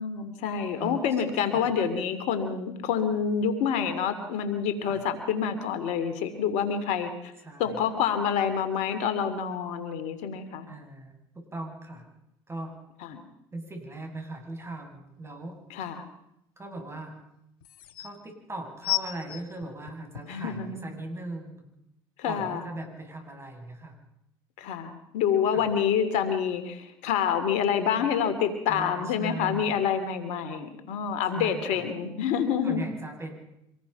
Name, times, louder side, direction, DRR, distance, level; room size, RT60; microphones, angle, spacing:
voice 1, 0.0-7.3 7.6-10.7 13.1-13.2 15.7-16.0 20.3-20.8 22.2-22.7 24.6-32.9, left 7 dB, 70° left, 10 dB, 2.8 m, -27 dB
voice 2, 0.8-1.7 4.8-5.0 7.4-7.8 10.7-12.0 12.5-12.8 13.5-15.6 16.6-17.2 18.0-21.6 22.2-24.0 25.5-25.7 28.7-29.8 31.3-31.8 32.6-33.5, right 2 dB, 20° right, 3 dB, 7.9 m, -39 dB
sound 1, 15.5-15.6 17.2-17.3 17.6-18.1 18.8-20.5 21.2-21.3, left 18 dB, 90° left, 1.4 m, -32 dB
26.0 x 19.5 x 5.9 m, 0.81 s
hypercardioid pair, 70°, 12 cm